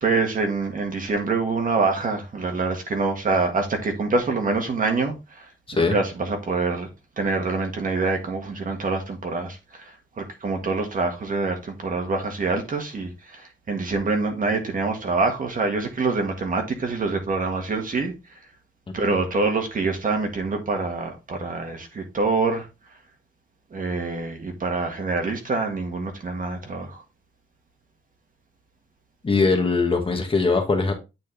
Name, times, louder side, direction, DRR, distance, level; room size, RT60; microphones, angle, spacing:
voice 1, 0.0-5.5 5.7-6.9 7.2-9.9 10.2-18.1 18.9-22.7 23.7-27.0, right 3 dB, 45° right, 1.7 m, -25 dB
voice 2, 29.2-30.9, left 4 dB, 25° left, 1.3 m, -21 dB
8.8 x 4.3 x 3.3 m
wide cardioid pair, 170°, 20 cm